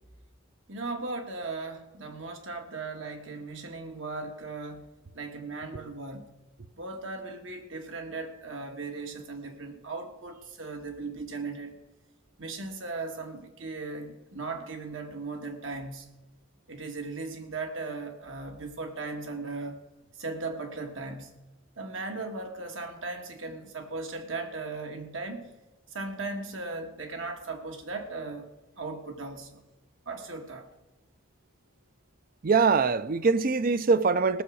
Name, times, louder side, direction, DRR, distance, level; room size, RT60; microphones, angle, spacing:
voice 1, 0.7-4.9 5.1-6.3 6.8-11.8 12.4-16.2 16.7-19.8 20.2-21.4 21.8-25.4 25.9-28.5 28.8-29.6 30.1-30.7, right 3 dB, 75° right, 1.7 m, -37 dB
voice 2, 32.4-34.4, right 4 dB, 45° right, 0.5 m, -23 dB
18.0 x 7.1 x 6.3 m
head